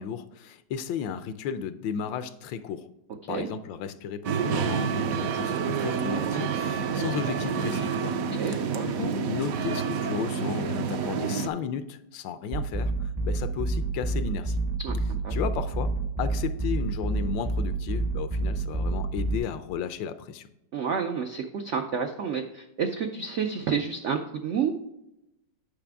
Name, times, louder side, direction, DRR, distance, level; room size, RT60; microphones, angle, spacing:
voice 1, 0.0-2.9 3.3-8.2 8.5-14.6 15.3-20.5, left 7 dB, 85° left, 11 dB, 1.3 m, -34 dB
sound 1, 4.2-11.5, right 6 dB, 70° right, 0.9 m, -28 dB
voice 2, 8.4-8.9 14.8-15.0 15.2-15.3 20.7-24.7, right 6 dB, 90° right, 5 dB, 0.6 m, -29 dB
sound 2, 12.5-19.4, right 3 dB, 40° right, 0.5 m, -29 dB
8.5 x 5.8 x 3.5 m, 0.85 s
omnidirectional pair, 2.0 m